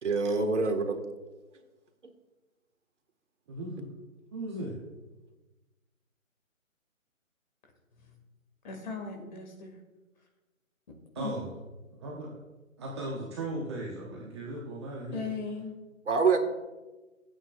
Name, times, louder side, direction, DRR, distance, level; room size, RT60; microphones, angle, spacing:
voice 1, 0.0-1.0 16.1-16.4, right 4 dB, 60° right, 5 dB, 1.8 m, -25 dB
voice 2, 3.5-3.9 4.3-4.8 11.1-11.5 11.9-12.4 12.8-15.2, right 1 dB, 20° right, -3 dB, 1.2 m, -37 dB
voice 3, 8.6-9.7 11.1-11.3 15.1-15.8, left 4 dB, 35° left, 2 dB, 2.2 m, -37 dB
26.5 x 9.0 x 2.5 m, 1.2 s
figure-of-eight pair, 150°, 41 cm